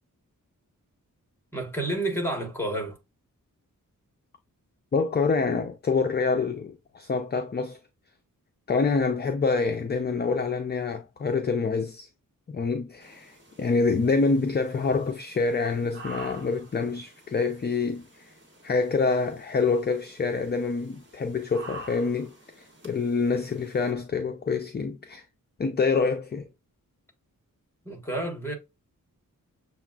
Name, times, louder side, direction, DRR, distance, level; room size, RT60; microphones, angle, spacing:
voice 1, 1.5-3.0 27.8-28.5, right 1 dB, 5° left, 1.4 m, -30 dB
voice 2, 4.9-7.8 8.7-12.1 12.5-18.3 18.6-25.2 25.6-26.5, left 4 dB, 30° left, 0.4 m, -26 dB
sound 1, 13.0-23.9, right 2 dB, 35° right, 1.4 m, -48 dB
6.9 x 2.4 x 2.3 m
wide cardioid pair, 135°, 34 cm